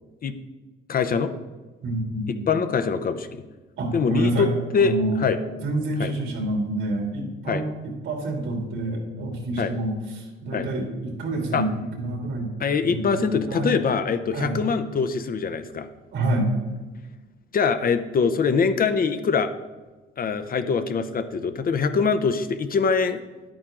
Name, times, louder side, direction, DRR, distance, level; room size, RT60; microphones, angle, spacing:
voice 1, 0.9-1.3 2.5-3.3 3.9-4.5 4.7-5.4 6.0-6.1 7.5-7.6 9.6-9.7 10.5-10.7 11.5-11.6 12.6-15.9 17.5-19.5 20.2-23.2, left 5 dB, 45° left, 10 dB, 0.8 m, -23 dB
voice 2, 1.8-2.5 3.8-4.5 4.8-5.2 5.5-12.5 12.9-13.8 14.3-14.6 16.1-16.5, right 1 dB, 85° right, 1 dB, 2.8 m, -28 dB
10.0 x 8.7 x 3.8 m, 1.2 s
cardioid pair, 90°, 20 cm